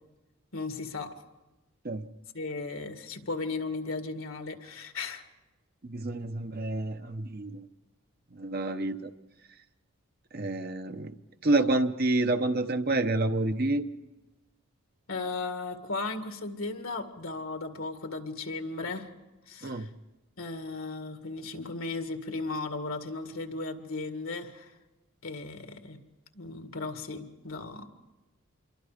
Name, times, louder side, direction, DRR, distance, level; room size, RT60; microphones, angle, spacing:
voice 1, 0.5-1.1 2.3-5.2 15.1-19.1 19.5-19.9 20.4-24.7 25.2-26.0 26.3-27.9, left 3 dB, 70° left, 6 dB, 2.0 m, -36 dB
voice 2, 5.8-7.6 8.3-9.1 10.3-11.1 11.4-13.8 19.6-19.9, right 2 dB, 45° right, 8 dB, 0.8 m, -28 dB
26.5 x 23.0 x 5.1 m, 1.1 s
head